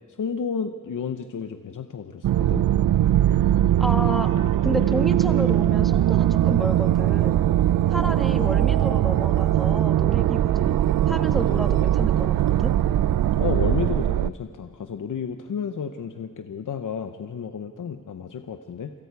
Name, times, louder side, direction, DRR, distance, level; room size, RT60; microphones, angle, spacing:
voice 1, 0.2-2.7 13.3-18.9, left 7 dB, 70° left, 7 dB, 0.9 m, -31 dB
sound 1, 2.2-14.3, right 12 dB, 90° right, 0.5 m, -21 dB
voice 2, 3.8-4.3 4.6-7.4 7.9-10.8 11.1-12.4 12.6-12.7, equal, ahead, 6 dB, 1.3 m, -31 dB
28.5 x 25.5 x 4.7 m, 2.1 s
wide cardioid pair, 130°, 32 cm